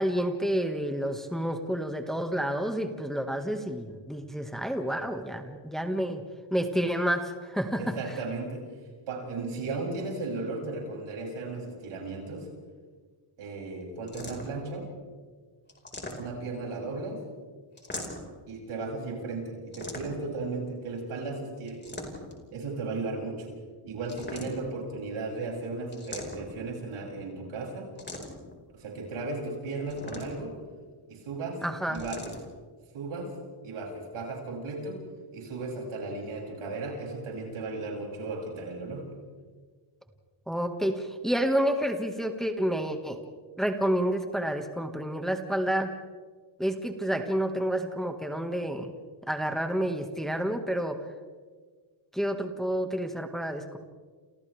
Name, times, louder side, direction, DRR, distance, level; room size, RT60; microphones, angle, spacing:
voice 1, 0.0-6.2 6.5-8.0 31.6-32.0 40.5-43.2 43.6-45.9 46.6-48.9 49.3-51.0 52.1-53.8, equal, ahead, 5 dB, 1.7 m, -29 dB
voice 2, 7.8-8.7 9.1-12.5 13.4-14.9 16.1-17.2 18.5-21.8 22.5-23.5 23.8-27.9 28.7-30.6 31.1-31.6 31.9-32.2 32.9-33.3 33.6-35.0 35.3-39.1, right 3 dB, 80° right, -1 dB, 7.3 m, -35 dB
sound 1, 14.1-14.7 15.7-16.6 17.8-18.4 19.7-20.4 21.7-22.4 24.0-24.8 25.9-26.7 28.0-28.5 29.9-30.6 31.9-32.4, left 1 dB, 20° left, 5.0 m, -40 dB
29.5 x 29.0 x 3.5 m, 1.5 s
cardioid pair, 100°, 49 cm